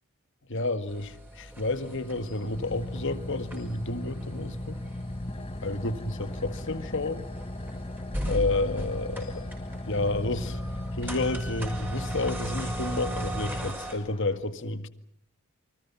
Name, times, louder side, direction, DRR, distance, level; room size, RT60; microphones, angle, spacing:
voice 1, 0.5-4.8 5.6-7.3 8.3-9.5 9.9-10.6 11.0-14.9, left 2 dB, 55° left, 1.9 m, -31 dB
sound 1, 0.9-13.9, right 1 dB, 10° right, 6.1 m, -39 dB
Car / Idling, 1.4-14.4, left 1 dB, 25° left, 1.2 m, -36 dB
29.0 x 25.5 x 5.9 m
head